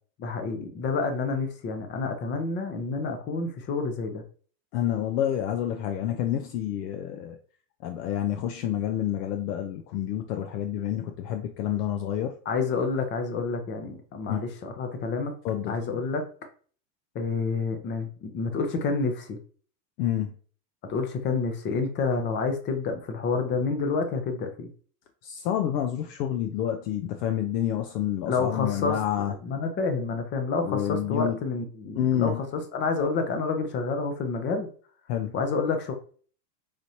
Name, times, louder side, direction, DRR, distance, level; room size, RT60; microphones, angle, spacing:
voice 1, 0.2-4.2 12.5-15.3 15.7-16.2 17.1-19.4 20.9-24.7 28.3-29.0 29.4-34.7 35.3-35.9, left 4 dB, 25° left, 6 dB, 0.6 m, -28 dB
voice 2, 4.7-7.4 7.8-12.4 14.3-14.4 15.4-15.8 20.0-20.3 25.2-29.3 30.6-31.4 32.0-32.4 35.1-35.3, left 10 dB, 70° left, 5 dB, 0.6 m, -28 dB
5.0 x 2.8 x 2.7 m, 0.43 s
supercardioid pair, 140°, 49 cm